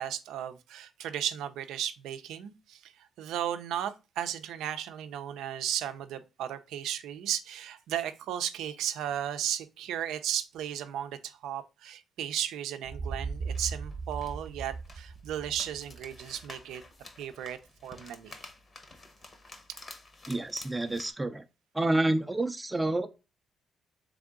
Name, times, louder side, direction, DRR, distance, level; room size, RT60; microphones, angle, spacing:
voice 1, 0.0-16.8 17.2-18.3, right 10 dB, 85° right, 0.5 m, -35 dB
sound 1, 12.8-16.7, right 4 dB, 45° right, 0.9 m, -38 dB
sound 2, 13.2-21.1, left 2 dB, 35° left, 0.9 m, -51 dB
voice 2, 20.3-21.4 21.7-23.1, right 2 dB, 15° right, 0.5 m, -28 dB
3.5 x 3.4 x 3.7 m
cardioid pair, 90°, 0 cm